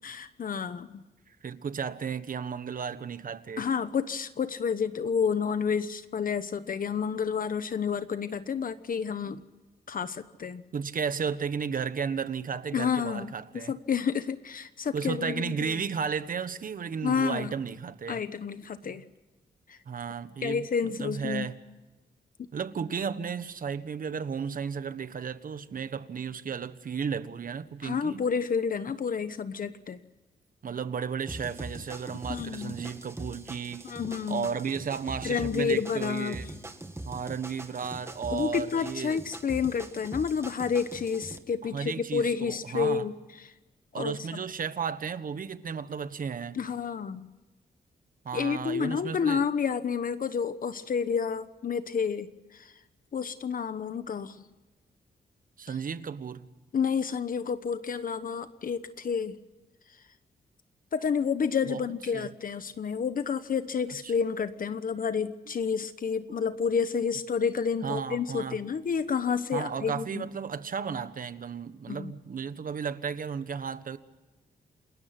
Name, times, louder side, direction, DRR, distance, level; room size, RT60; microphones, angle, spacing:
voice 1, 0.0-1.0 3.6-9.4 9.9-10.6 12.7-15.8 17.0-17.5 18.1-19.0 19.7-19.8 20.4-21.5 27.8-30.0 32.3-32.8 33.8-34.5 35.2-36.4 38.3-43.1 43.4-43.5 44.0-44.2 46.5-47.3 48.3-52.7 53.1-54.4 56.7-59.4 60.9-70.3 71.9-72.1, left 6 dB, 55° left, 1.1 m, -30 dB
voice 2, 1.3-3.6 10.7-13.7 14.9-18.2 19.9-21.5 22.5-28.3 30.6-33.9 34.3-36.5 37.0-39.2 41.7-43.1 43.9-46.6 48.2-49.4 55.6-56.5 61.7-61.8 62.1-62.3 64.0-64.1 66.3-66.4 67.8-68.6 69.5-74.0, right 6 dB, 55° right, 1.4 m, -34 dB
sound 1, 31.3-41.4, right 1 dB, 15° right, 2.1 m, -42 dB
29.0 x 20.5 x 5.9 m
wide cardioid pair, 115°, 17 cm